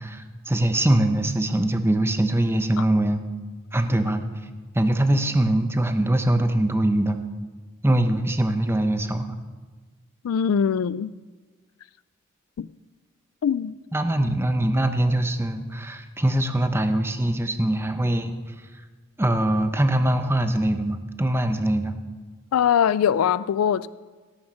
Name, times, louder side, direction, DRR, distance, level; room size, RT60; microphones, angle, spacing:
voice 1, 0.0-3.2 3.7-4.2 4.7-7.2 7.8-9.4 13.9-18.3 19.2-21.9, right 1 dB, 10° right, 0.9 m, -22 dB
voice 2, 10.2-11.1 12.6-12.7 13.4-13.8 22.5-23.9, left 8 dB, 85° left, 0.3 m, -22 dB
17.5 x 7.2 x 6.4 m
head